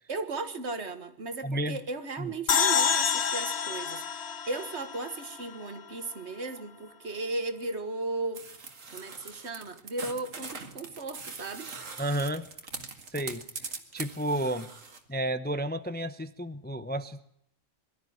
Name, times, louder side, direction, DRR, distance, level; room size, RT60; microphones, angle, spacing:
voice 1, 0.1-8.4 8.9-11.7, right 3 dB, 60° right, 10 dB, 1.9 m, -36 dB
voice 2, 1.4-1.8 2.2-2.3 12.0-12.5 13.1-13.4 13.9-14.7 15.1-17.2, right 1 dB, 10° left, 11 dB, 0.7 m, -31 dB
sound 1, 2.5-5.8, left 7 dB, 60° left, 1.2 m, -28 dB
sound 2, 8.3-15.0, right 4 dB, 85° right, 2.4 m, -42 dB
22.5 x 13.0 x 9.2 m, 0.75 s
omnidirectional pair, 1.3 m